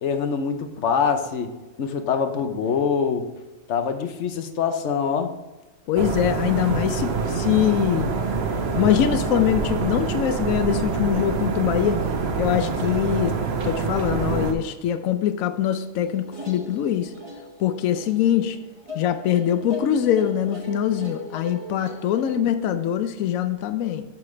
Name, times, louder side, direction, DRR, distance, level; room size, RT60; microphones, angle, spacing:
voice 1, 0.0-1.5 1.8-3.3 3.7-5.4, left 6 dB, 65° left, 7 dB, 1.1 m, -24 dB
voice 2, 5.9-8.1 8.7-12.0 12.4-13.4 13.6-17.1 17.6-18.6 18.9-24.0, left 10 dB, 85° left, 10 dB, 1.0 m, -23 dB
sound 1, 6.0-14.5, right 4 dB, 55° right, 1.0 m, -26 dB
sound 2, 16.0-22.4, equal, 20° right, 1.8 m, -40 dB
8.5 x 6.0 x 3.3 m, 1.1 s
omnidirectional pair, 1.4 m